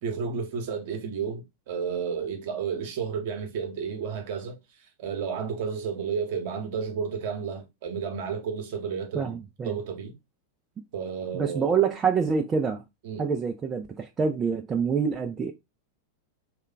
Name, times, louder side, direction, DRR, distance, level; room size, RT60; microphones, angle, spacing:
voice 1, 0.0-9.4 9.6-10.1 10.9-11.8 13.0-13.3, right 6 dB, 50° right, 0.9 m, -32 dB
voice 2, 9.1-9.7 11.3-12.8 13.2-15.5, right 6 dB, 20° right, 0.4 m, -26 dB
3.1 x 2.3 x 3.7 m
figure-of-eight pair, 90°, 0 cm